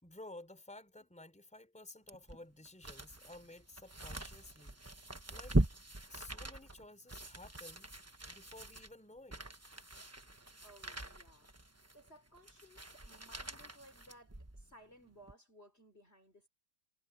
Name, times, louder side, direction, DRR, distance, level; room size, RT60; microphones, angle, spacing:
voice 1, 0.0-5.6 6.1-7.9 8.3-9.4, left 2 dB, 5° left, 3.8 m, -54 dB
sound 1, 2.1-14.7 15.2-15.3, right 2 dB, 15° right, 0.6 m, -40 dB
voice 2, 10.6-11.5 11.9-16.5, equal, 30° left, 3.8 m, -60 dB
omnidirectional pair, 2.1 m